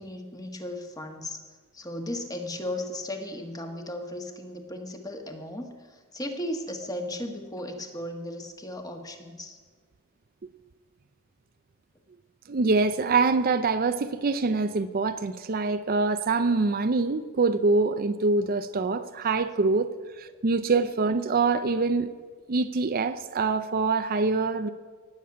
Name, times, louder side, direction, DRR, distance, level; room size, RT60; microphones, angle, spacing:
voice 1, 0.0-1.4 1.7-9.6, left 1 dB, 15° left, 4 dB, 1.5 m, -36 dB
voice 2, 12.5-19.9 20.2-22.1 22.5-24.7, right 3 dB, 45° right, 10 dB, 0.5 m, -25 dB
18.5 x 7.4 x 8.6 m, 1.5 s
head